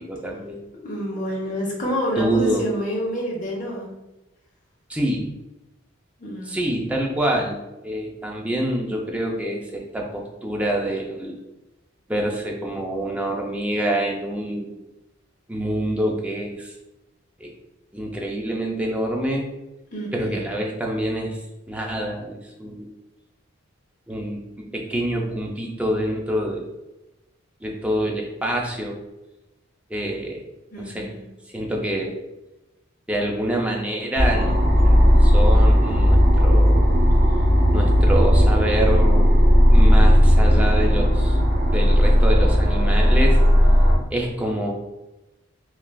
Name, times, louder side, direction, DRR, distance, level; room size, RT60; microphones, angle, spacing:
voice 1, 0.0-0.7 2.2-2.7 4.9-5.3 6.5-11.4 12.1-14.7 15.5-16.7 17.4-17.5 17.9-19.5 20.1-21.4 21.7-22.9 24.1-26.7 27.6-29.0 29.9-30.4 30.8-31.1 31.5-32.2 33.1-36.8 37.7-39.3 39.7-41.4 41.7-43.4 44.1-44.8, right 1 dB, 5° right, -1 dB, 0.4 m, -26 dB
voice 2, 0.7-3.9 6.2-6.6 19.9-20.5 30.7-31.3, equal, 40° left, -2 dB, 0.8 m, -28 dB
sound 1, 34.2-44.0, equal, 50° right, 0.7 m, -15 dB
3.2 x 2.4 x 2.2 m, 0.97 s
head